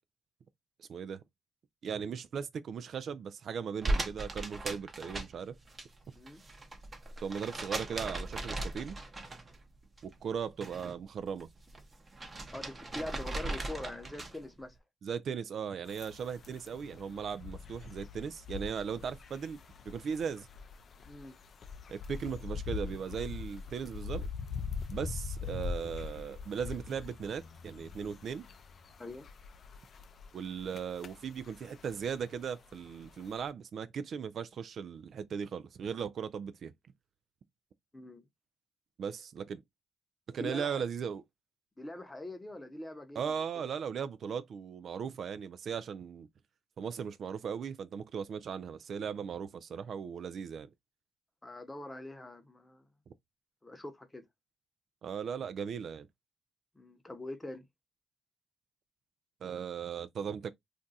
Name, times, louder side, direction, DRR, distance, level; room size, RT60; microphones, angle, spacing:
voice 1, 0.8-1.2 1.8-5.5 7.2-9.0 10.0-11.5 15.0-19.6 19.9-20.5 21.9-24.3 24.9-28.5 30.3-36.7 39.0-39.6 40.3-41.2 43.2-46.3 46.8-50.7 55.0-56.1 59.4-60.5, right 7 dB, 60° right, 0.3 m, -38 dB
sound 1, 3.8-5.9 6.1-9.6 10.0-10.9 11.3-14.5, right 2 dB, 30° right, 0.7 m, -38 dB
voice 2, 12.5-14.8 21.1-21.3 29.0-29.3 37.9-38.2 40.4-40.8 41.8-43.4 51.4-52.9 53.6-54.2 56.7-57.6, left 1 dB, 15° left, 0.8 m, -43 dB
sound 2, 15.9-33.5, left 5 dB, 50° left, 0.4 m, -43 dB
2.5 x 2.3 x 3.9 m
cardioid pair, 90°, 0 cm